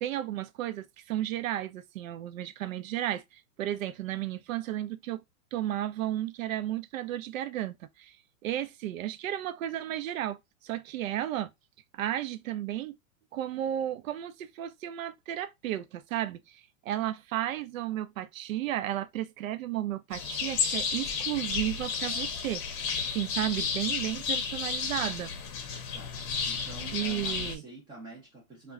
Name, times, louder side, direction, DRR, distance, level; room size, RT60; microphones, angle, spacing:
voice 1, 0.0-5.2 5.5-8.2 8.4-10.4 10.6-11.5 11.9-12.9 13.3-16.6 16.9-22.6 23.1-25.3 26.9-27.6, right 12 dB, 70° right, 0.6 m, -33 dB
sound 1, 20.1-27.5, left 6 dB, 35° left, 0.7 m, -32 dB
voice 2, 26.5-28.7, right 2 dB, 10° right, 0.5 m, -47 dB
2.2 x 2.1 x 3.5 m
hypercardioid pair, 145°, 42 cm